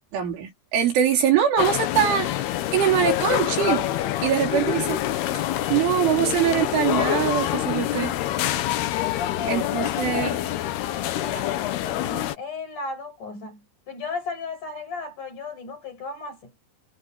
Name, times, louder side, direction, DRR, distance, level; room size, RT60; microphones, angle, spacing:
voice 1, 0.1-3.9 4.2-5.0 5.3-8.1 9.5-10.3, right 9 dB, 75° right, 6.4 m, -23 dB
sound 1, 1.6-12.4, left 13 dB, 70° left, 2.7 m, -26 dB
voice 2, 8.9-10.6 11.2-16.5, left 4 dB, 40° left, 7.1 m, -36 dB
omnidirectional pair, 5.6 m